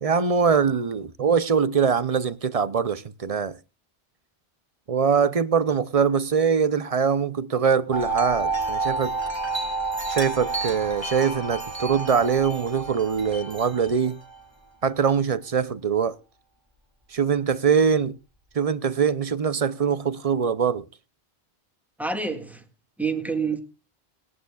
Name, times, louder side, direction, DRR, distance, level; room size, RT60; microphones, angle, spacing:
voice 1, 0.0-3.6 4.9-9.2 10.1-14.2 14.8-16.2 17.1-18.2 18.5-20.9, right 6 dB, 40° right, 0.6 m, -23 dB
Wind chime, 7.9-14.4, right 3 dB, 25° right, 2.1 m, -30 dB
voice 2, 22.0-22.6 23.0-23.6, right 4 dB, ahead, 1.8 m, -27 dB
20.0 x 11.0 x 2.3 m
omnidirectional pair, 1.1 m